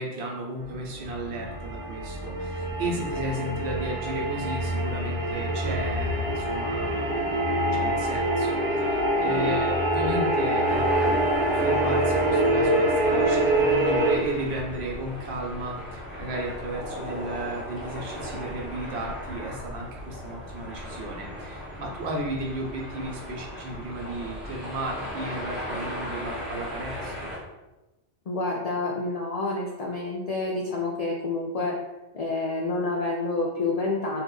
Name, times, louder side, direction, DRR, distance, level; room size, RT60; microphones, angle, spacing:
voice 1, 0.0-7.4 7.7-11.3 11.5-27.3, right 1 dB, 65° right, -1 dB, 1.0 m, -34 dB
sound 1, 0.7-14.2, right 1 dB, 90° right, 1.0 m, -25 dB
voice 2, 9.2-9.6 28.3-31.7 32.1-34.2, left 3 dB, 70° left, -2 dB, 0.3 m, -28 dB
sound 2, 10.6-27.4, equal, 25° right, 1.4 m, -36 dB
2.7 x 2.4 x 3.7 m, 1.0 s
omnidirectional pair, 1.2 m